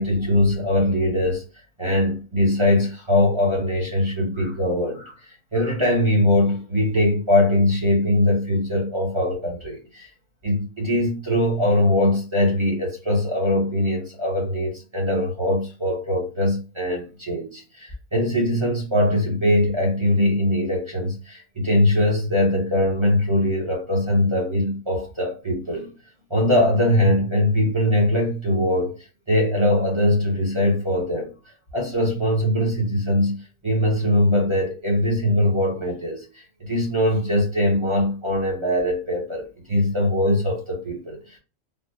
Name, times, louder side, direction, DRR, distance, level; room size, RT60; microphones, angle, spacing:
voice 1, 0.0-1.4 1.8-5.2 5.5-10.1 10.4-25.9 26.3-28.9 29.3-31.3 31.7-41.4, left 1 dB, 25° right, 1.1 m, -21 dB
3.5 x 2.4 x 2.7 m
omnidirectional pair, 1.4 m